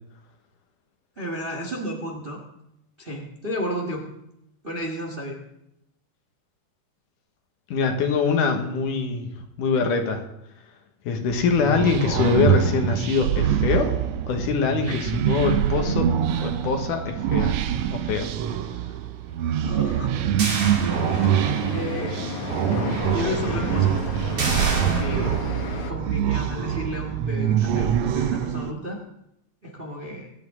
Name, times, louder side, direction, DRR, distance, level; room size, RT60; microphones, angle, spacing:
voice 1, 1.2-2.4 3.0-4.0 4.6-5.4 14.9-15.0 19.6-20.1 21.6-23.9 24.8-25.5 25.9-29.0 29.6-30.3, equal, 30° right, 1 dB, 1.0 m, -32 dB
voice 2, 7.7-9.3 9.6-10.2 11.0-13.9 14.3-16.1 16.4-17.6 17.9-18.3, left 5 dB, 85° left, 4 dB, 3.0 m, -23 dB
sound 1, 11.3-28.7, right 10 dB, 70° right, 1.7 m, -25 dB
sound 2, 20.4-21.7 22.1-22.2 24.4-25.0, right 3 dB, 50° right, 3.2 m, -29 dB
sound 3, 20.9-25.9, left 4 dB, 60° left, 1.9 m, -32 dB
23.0 x 8.8 x 3.7 m, 0.80 s
omnidirectional pair, 3.6 m